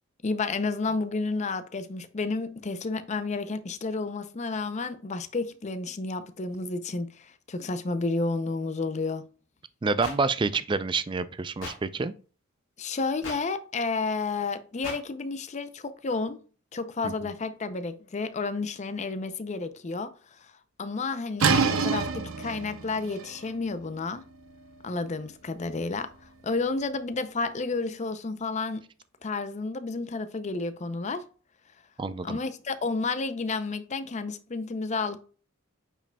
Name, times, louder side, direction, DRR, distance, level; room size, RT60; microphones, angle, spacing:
voice 1, 0.2-9.2 12.8-16.4 16.7-20.5 20.8-24.2 24.8-26.1 26.4-28.8 29.2-31.3 32.2-35.2, left 3 dB, 35° left, 0.5 m, -31 dB
voice 2, 9.8-12.1 17.0-17.1 32.0-32.4, right 4 dB, 25° right, 0.3 m, -28 dB
sound 1, 10.0-10.2 11.6-11.7 13.2-13.4 14.8-15.0, left 3 dB, 65° left, 2.6 m, -36 dB
sound 2, 21.4-27.0, right 5 dB, 80° right, 0.7 m, -30 dB
8.7 x 4.9 x 2.2 m
head